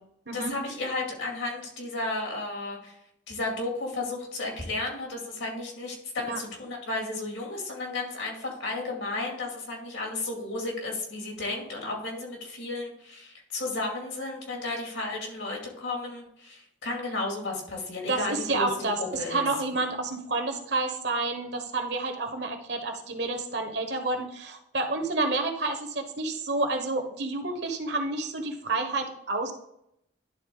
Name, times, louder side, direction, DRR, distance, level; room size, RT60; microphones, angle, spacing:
voice 1, 0.3-3.0 3.3-18.7 19.0-19.4, left 2 dB, 80° left, 0 dB, 2.5 m, -33 dB
voice 2, 18.1-29.5, right 3 dB, 60° right, 5 dB, 1.2 m, -29 dB
11.0 x 3.9 x 3.8 m, 0.76 s
head